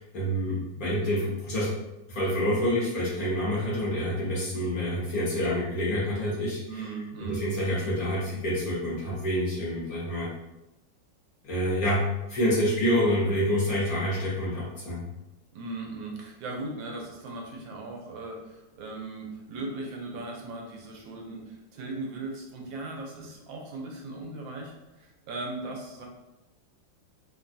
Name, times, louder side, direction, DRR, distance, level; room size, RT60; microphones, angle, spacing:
voice 1, 0.0-1.7 2.1-6.9 7.2-10.3 11.4-15.0, equal, 60° left, -7 dB, 1.1 m, -27 dB
voice 2, 6.7-7.4 15.5-24.7 25.0-26.1, right 2 dB, 85° right, 1 dB, 1.3 m, -38 dB
3.3 x 2.2 x 2.6 m, 0.96 s
omnidirectional pair, 2.1 m